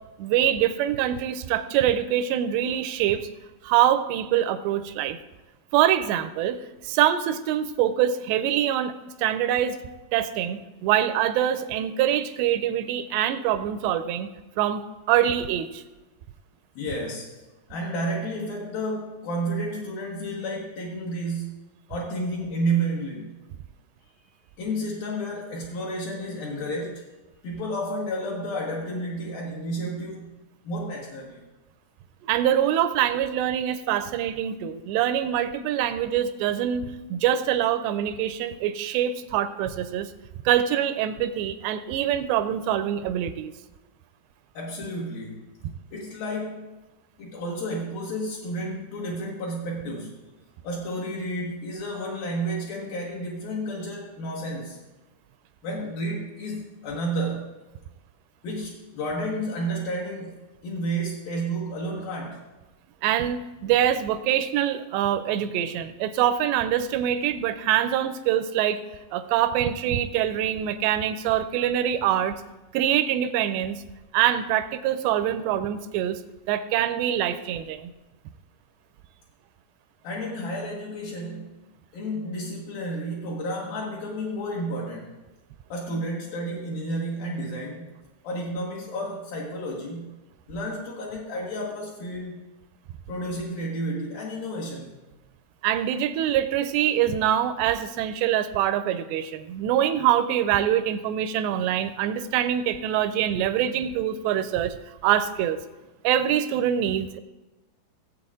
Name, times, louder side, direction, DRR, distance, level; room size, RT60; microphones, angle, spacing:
voice 1, 0.2-3.3 3.6-5.2 5.7-8.9 9.2-9.8 10.1-14.3 14.6-15.8 32.2-40.1 40.5-43.5 63.0-68.8 69.1-72.4 72.7-73.8 74.1-76.2 76.5-77.9 95.6-104.8 105.0-105.6 106.0-107.2, right 11 dB, 85° right, 11 dB, 2.6 m, -24 dB
voice 2, 16.8-17.4 17.7-21.6 21.9-23.4 24.6-27.1 27.4-30.3 30.6-31.5 44.5-45.5 45.9-46.7 47.2-50.2 50.6-54.8 55.6-57.5 58.4-62.4 80.0-81.6 81.9-85.2 85.7-87.9 88.2-90.1 90.5-92.5 93.1-94.9, right 1 dB, 65° left, -4 dB, 2.8 m, -31 dB
17.0 x 8.2 x 3.7 m, 1.1 s
omnidirectional pair, 5.0 m